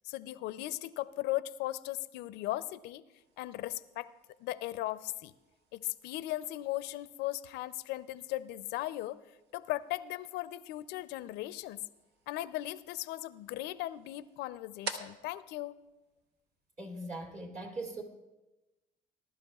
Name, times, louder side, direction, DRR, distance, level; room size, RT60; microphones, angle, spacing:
voice 1, 0.0-3.0 3.4-4.1 4.4-5.3 5.7-9.2 9.5-11.8 12.3-15.8, left 16 dB, 90° left, 15 dB, 0.5 m, -37 dB
sound 1, 3.2-16.8, right 4 dB, 75° right, 1.0 m, -52 dB
voice 2, 16.8-18.0, right 2 dB, 50° right, 2 dB, 2.8 m, -40 dB
19.0 x 12.0 x 2.3 m, 1.0 s
cardioid pair, 110°, 17 cm